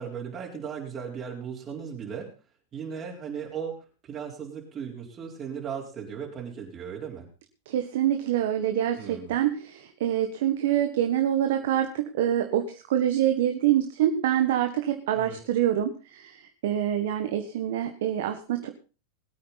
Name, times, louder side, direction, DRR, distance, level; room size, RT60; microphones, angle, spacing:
voice 1, 0.0-2.3 2.7-7.3 9.0-9.4 15.1-15.4, right 7 dB, 30° right, -2 dB, 4.2 m, -37 dB
voice 2, 7.7-16.4 16.6-18.7, right 11 dB, 65° right, 6 dB, 1.5 m, -26 dB
21.0 x 8.7 x 4.1 m, 0.35 s
hypercardioid pair, 100°, 0 cm